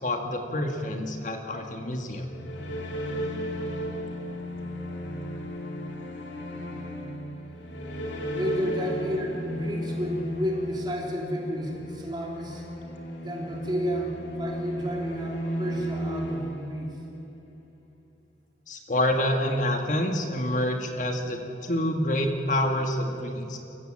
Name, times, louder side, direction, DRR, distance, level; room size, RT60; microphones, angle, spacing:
voice 1, 0.0-2.3 18.7-23.6, left 1 dB, 45° left, 4 dB, 1.7 m, -27 dB
sound 1, 2.1-17.3, equal, 90° left, 2.7 m, -34 dB
voice 2, 8.3-12.6 13.2-17.0, equal, 25° right, -1 dB, 3.3 m, -31 dB
27.5 x 15.5 x 7.5 m, 2.9 s
head